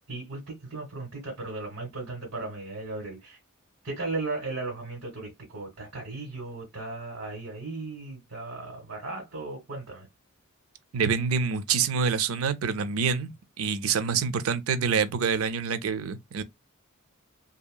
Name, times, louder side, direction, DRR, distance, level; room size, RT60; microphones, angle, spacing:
voice 1, 0.0-3.4 3.8-10.1, right 3 dB, 50° right, 1.6 m, -36 dB
voice 2, 10.9-16.4, right 6 dB, 75° right, 0.5 m, -26 dB
2.8 x 2.8 x 2.2 m
head